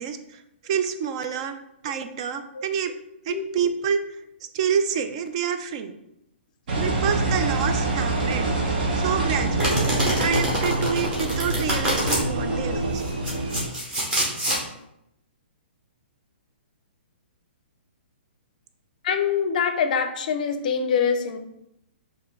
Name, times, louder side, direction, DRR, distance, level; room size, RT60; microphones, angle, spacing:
voice 1, 0.0-1.6 1.8-2.9 3.3-4.0 4.5-5.9 6.7-8.6 9.0-13.0, right 7 dB, 35° right, 9 dB, 0.4 m, -28 dB
Engine, 6.7-13.7, right 2 dB, 50° right, 0.9 m, -26 dB
Domestic sounds home sounds, 9.6-12.2 13.0-14.6, right 1 dB, 15° right, 1.1 m, -26 dB
voice 2, 19.0-21.4, left 6 dB, 45° left, 7 dB, 0.5 m, -24 dB
6.5 x 2.6 x 3.1 m, 0.83 s
hypercardioid pair, 165°, 6 cm